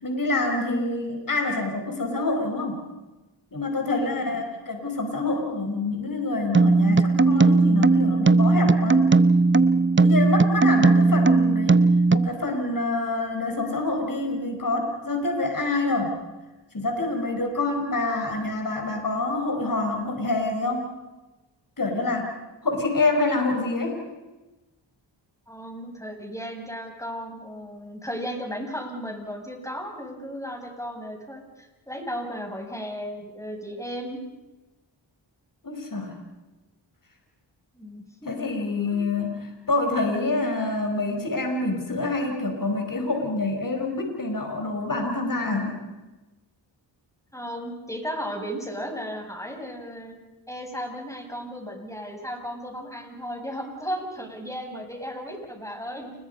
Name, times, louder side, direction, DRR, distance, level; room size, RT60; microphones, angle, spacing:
voice 1, 0.0-2.8 3.5-9.1 10.0-11.8 12.1-16.2 16.7-20.9 21.8-22.3 22.6-24.0 35.6-36.1 38.3-45.8, left 2 dB, 45° left, 3 dB, 5.2 m, -26 dB
sound 1, 6.5-12.3, right 3 dB, 25° right, 0.9 m, -18 dB
voice 2, 25.5-34.2 37.7-38.3 38.8-39.3 45.5-45.6 47.3-50.2 50.5-56.1, equal, 5° left, 2 dB, 7.8 m, -35 dB
29.0 x 22.0 x 5.6 m, 1.1 s
cardioid pair, 45°, 47 cm